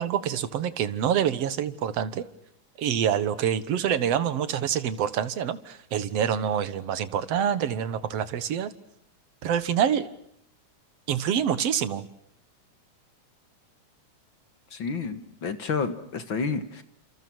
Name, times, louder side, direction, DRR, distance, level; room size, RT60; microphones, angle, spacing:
voice 1, 0.0-2.3 2.8-8.7 9.4-10.1 11.1-12.1, right 9 dB, 60° right, 14 dB, 2.2 m, -26 dB
voice 2, 14.7-16.8, left 5 dB, 45° left, 10 dB, 2.0 m, -30 dB
30.0 x 27.5 x 6.2 m, 0.70 s
omnidirectional pair, 3.5 m